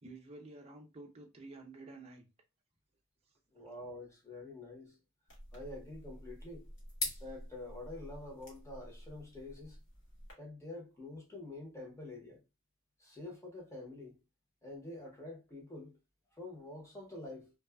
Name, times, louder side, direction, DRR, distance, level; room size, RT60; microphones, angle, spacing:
voice 1, 0.0-2.3, right 2 dB, 30° right, 0.6 m, -51 dB
voice 2, 3.5-4.9 5.5-6.7 7.2-9.8 10.4-12.4 13.0-14.2 14.6-15.9 16.3-17.5, left 2 dB, 15° left, 0.8 m, -47 dB
sound 1, 5.3-10.3, left 2 dB, 60° left, 1.2 m, -45 dB
2.6 x 2.3 x 2.3 m
head